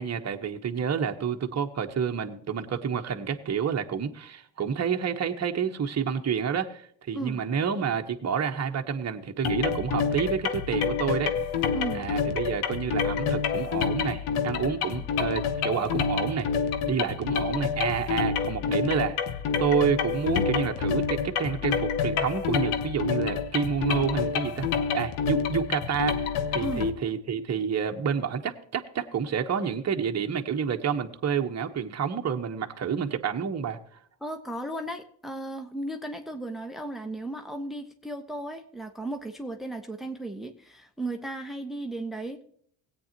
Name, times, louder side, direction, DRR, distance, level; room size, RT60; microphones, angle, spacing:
voice 1, 0.0-11.3 11.9-16.5 16.9-19.1 19.6-33.8, right 7 dB, 30° right, 4 dB, 1.2 m, -29 dB
sound 1, 9.4-26.9, left 6 dB, 75° left, 1.1 m, -28 dB
voice 2, 11.7-12.0 26.6-26.9 34.2-42.4, right 1 dB, ahead, 6 dB, 1.1 m, -35 dB
17.5 x 8.9 x 3.0 m, 0.63 s
supercardioid pair, 65°, 49 cm